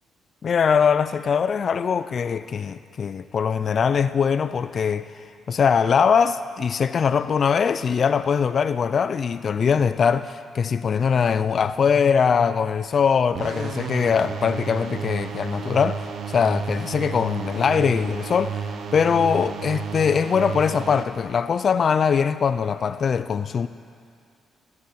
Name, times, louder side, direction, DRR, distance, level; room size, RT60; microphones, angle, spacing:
voice 1, 0.4-16.0 16.3-23.7, left 6 dB, 50° left, 0.4 m, -22 dB
sound 1, 13.4-21.0, right 6 dB, 60° right, 1.1 m, -32 dB
15.0 x 9.5 x 8.8 m
cardioid pair, 90°, 0 cm